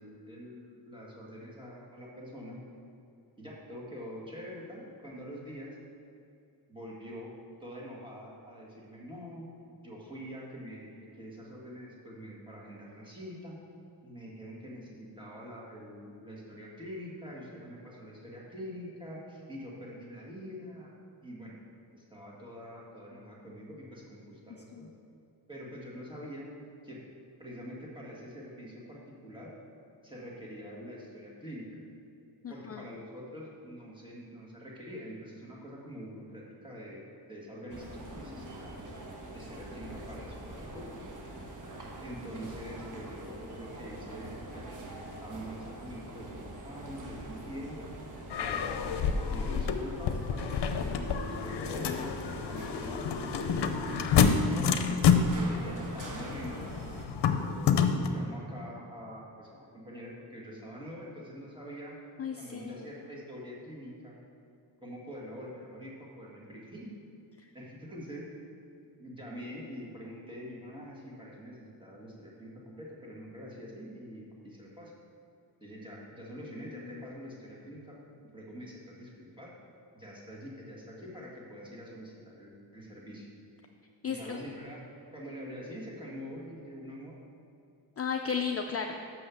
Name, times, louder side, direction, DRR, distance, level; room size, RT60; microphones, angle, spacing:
voice 1, 0.0-2.6 3.4-5.8 6.7-7.3 7.6-9.5 9.8-13.6 14.0-20.9 21.2-21.6 21.9-24.9 25.5-26.5 26.8-27.0 27.4-29.5 30.0-31.7 32.5-37.0 37.3-38.9 39.3-40.9 42.0-47.9 48.3-52.1 52.4-54.8 55.3-56.7 57.2-62.0 62.4-64.2 64.8-66.9 67.5-68.3 69.0-74.9 75.6-78.0 78.2-79.5 79.9-83.3 84.0-84.9 85.1-87.1, equal, 10° right, -4 dB, 1.8 m, -45 dB
voice 2, 32.4-32.9 62.2-62.9 67.4-67.5 76.9-77.0 84.0-84.4 88.0-89.0, left 6 dB, 35° left, 4 dB, 0.4 m, -35 dB
sound 1, 37.7-57.1, right 1 dB, 50° right, 1.1 m, -44 dB
sound 2, 48.3-58.1, left 6 dB, 75° left, 0.6 m, -28 dB
6.4 x 5.5 x 6.9 m, 2.6 s
wide cardioid pair, 110°, 41 cm